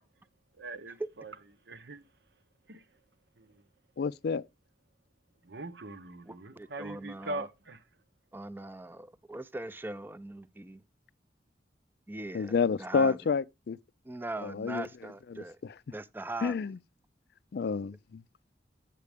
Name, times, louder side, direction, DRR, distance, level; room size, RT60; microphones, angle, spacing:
voice 1, 0.6-1.3 1.6-2.0 2.7-2.8 3.4-3.6 5.4-7.8, right 2 dB, 70° right, 0.9 m, -41 dB
voice 2, 4.0-4.4 12.3-13.8 14.4-14.9 15.3-15.4 16.4-16.8 17.5-18.2, left 5 dB, 60° left, 0.4 m, -29 dB
voice 3, 6.3-7.5 8.3-10.8 12.1-13.2 14.1-15.6 15.9-16.6, right 2 dB, 10° right, 0.4 m, -40 dB
8.2 x 7.5 x 3.4 m
head